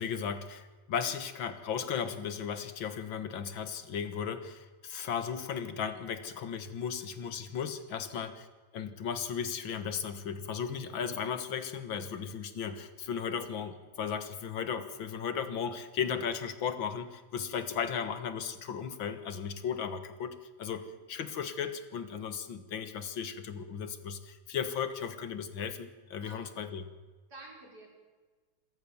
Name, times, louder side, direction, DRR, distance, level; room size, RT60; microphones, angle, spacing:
voice 1, 0.0-8.5 8.7-26.9, left 7 dB, 80° left, 11 dB, 2.2 m, -36 dB
voice 2, 7.9-8.3 20.6-21.0 26.2-26.7 27.3-27.9, right 2 dB, 55° right, -1 dB, 6.0 m, -52 dB
27.5 x 14.0 x 7.1 m, 1.3 s
omnidirectional pair, 2.1 m